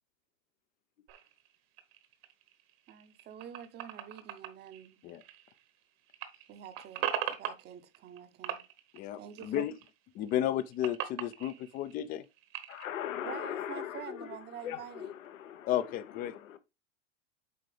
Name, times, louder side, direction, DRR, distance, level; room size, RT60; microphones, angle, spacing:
sound 1, 1.1-5.8 6.1-8.2 8.4-9.9 10.2-12.9, right 11 dB, 50° right, 1.2 m, -40 dB
voice 1, 2.9-5.0 6.5-8.6 9.2-9.7 13.2-15.1, right 9 dB, 25° right, 0.7 m, -47 dB
voice 2, 8.9-9.7 10.1-12.2 15.7-16.3, left 12 dB, 25° left, 0.3 m, -33 dB
voice 3, 12.7-16.6, left 10 dB, 85° left, 0.9 m, -40 dB
7.8 x 4.4 x 3.2 m
hypercardioid pair, 115°, 39 cm